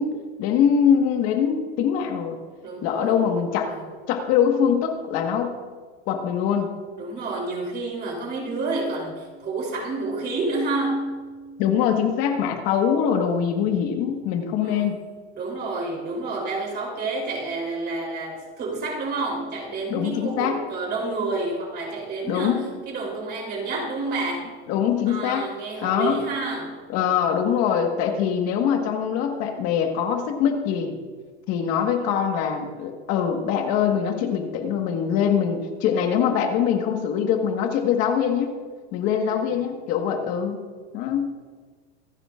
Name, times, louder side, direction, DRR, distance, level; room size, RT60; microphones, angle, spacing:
voice 1, 0.0-2.4 2.8-3.7 4.1-5.5 6.1-6.7 11.6-15.0 19.9-20.6 22.3-22.6 24.7-25.5 25.8-26.2 26.9-31.0 31.5-38.5 38.9-40.6 40.9-41.3, left 8 dB, 45° left, 4 dB, 1.6 m, -23 dB
voice 2, 2.6-3.8 7.0-11.4 14.6-14.9 15.4-24.5 25.1-26.8 39.1-39.5, right 3 dB, 30° right, -2 dB, 3.6 m, -29 dB
25.5 x 9.9 x 2.5 m, 1.5 s
supercardioid pair, 150°, 33 cm